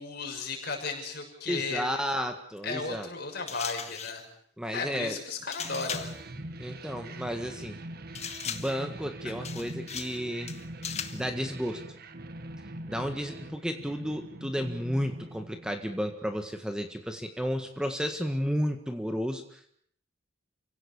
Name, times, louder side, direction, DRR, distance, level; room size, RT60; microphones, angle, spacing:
voice 1, 0.0-1.9 2.6-4.2 4.7-6.1, left 4 dB, 55° left, 2 dB, 6.5 m, -35 dB
voice 2, 1.5-3.1 4.6-5.2 6.6-7.8 8.5-10.5 11.1-11.8 12.9-19.7, equal, 5° right, 6 dB, 1.7 m, -32 dB
sound 1, 3.5-4.3 5.5-6.2 8.2-8.8 9.4-10.2 10.5-11.3, left 8 dB, 35° left, 1.6 m, -38 dB
sound 2, 5.6-16.1, right 1 dB, 55° right, 1.5 m, -42 dB
29.0 x 17.5 x 7.1 m, 0.65 s
head